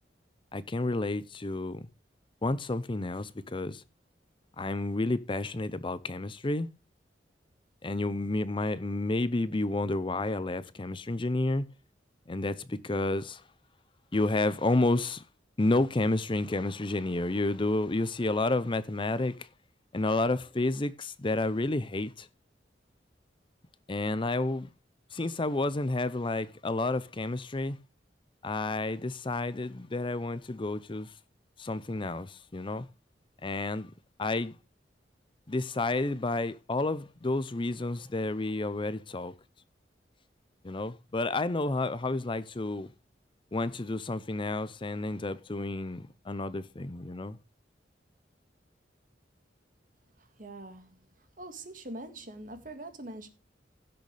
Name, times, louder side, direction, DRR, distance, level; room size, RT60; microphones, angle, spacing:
voice 1, 0.5-1.9 2.4-3.8 4.6-6.7 7.8-11.7 12.3-13.4 14.1-15.2 15.6-19.5 19.9-22.3 23.9-24.7 25.1-27.8 28.4-31.1 31.6-32.9 33.4-33.9 34.2-34.5 35.5-39.3 40.6-42.9 43.5-47.4, left 2 dB, 30° left, 0.6 m, -30 dB
voice 2, 50.2-51.0 51.4-53.3, right 1 dB, 50° right, 1.8 m, -43 dB
16.0 x 6.5 x 3.3 m
head